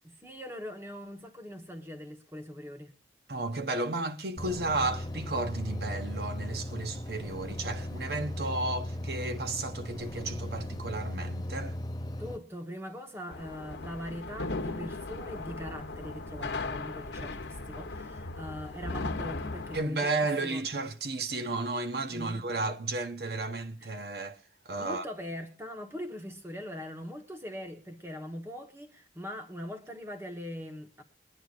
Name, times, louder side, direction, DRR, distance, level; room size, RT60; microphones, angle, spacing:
voice 1, 0.0-3.0 12.2-20.6 22.1-22.4 23.8-24.0 24.8-31.0, equal, 15° right, 1.3 m, -41 dB
voice 2, 3.3-11.8 19.7-24.4 24.6-25.0, right 2 dB, 60° right, 1.1 m, -33 dB
sound 1, 4.4-12.4, left 1 dB, 20° left, 0.5 m, -37 dB
sound 2, 13.3-19.8, left 3 dB, 90° left, 1.1 m, -37 dB
23.0 x 10.0 x 2.5 m
head